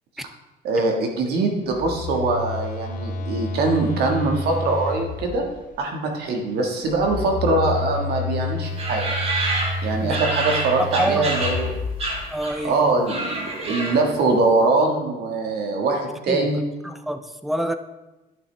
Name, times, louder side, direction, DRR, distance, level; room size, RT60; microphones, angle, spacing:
voice 1, 0.6-5.4 5.8-9.0 9.8-11.8 12.6-16.6, right 3 dB, 70° right, 1.6 m, -22 dB
Telephone, 1.7-5.7 6.8-12.6, left 3 dB, 50° left, 0.6 m, -30 dB
sound 1, 8.8-11.7 12.0-12.7 13.0-14.2, right 2 dB, 40° right, 1.8 m, -27 dB
voice 2, 10.8-11.3 12.3-13.0 16.3-16.5 16.8-17.7, right 1 dB, ahead, 0.5 m, -27 dB
11.5 x 5.7 x 3.3 m
cardioid pair, 110°, 17 cm